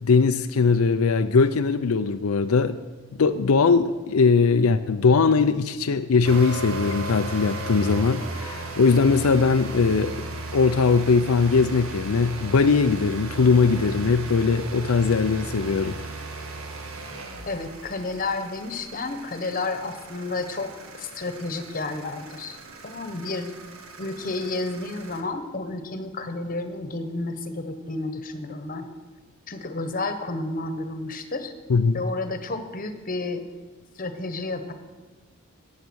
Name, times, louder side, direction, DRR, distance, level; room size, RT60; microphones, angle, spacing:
voice 1, 0.0-2.8 3.1-10.1 10.5-16.0 31.7-32.0, left 4 dB, 85° left, 0.5 m, -20 dB
sound 1, 6.2-25.2, right 2 dB, 75° right, 1.6 m, -36 dB
voice 2, 17.5-20.7 21.0-22.6 22.8-23.5 24.0-28.9 29.5-31.5 31.9-33.4 34.0-34.7, left 2 dB, 40° left, 1.2 m, -31 dB
15.5 x 9.4 x 6.3 m
head